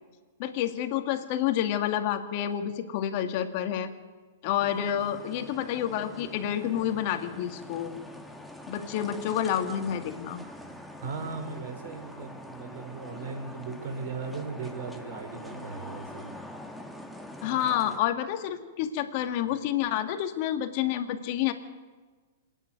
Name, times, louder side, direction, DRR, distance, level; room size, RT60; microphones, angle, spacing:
voice 1, 0.4-3.9 4.4-7.9 8.7-10.4 17.4-21.5, left 10 dB, 50° left, 7 dB, 2.1 m, -29 dB
sound 1, 4.6-18.0, left 1 dB, ahead, 2.0 m, -44 dB
voice 2, 11.0-16.3, right 4 dB, 65° right, 4 dB, 5.0 m, -37 dB
27.0 x 10.0 x 9.4 m, 1.4 s
hypercardioid pair, 110°, 0 cm